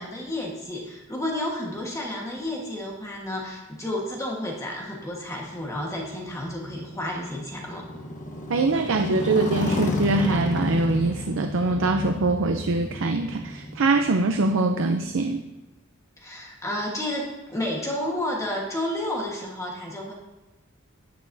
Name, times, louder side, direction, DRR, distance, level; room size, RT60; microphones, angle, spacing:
voice 1, 0.0-7.8 16.2-20.1, left 1 dB, 15° left, -2 dB, 1.4 m, -31 dB
Motorcycle, 5.5-15.4, left 1 dB, 40° left, 1.1 m, -32 dB
voice 2, 8.5-15.4, right 2 dB, 65° right, 6 dB, 0.6 m, -23 dB
11.5 x 9.7 x 2.7 m, 1.1 s
head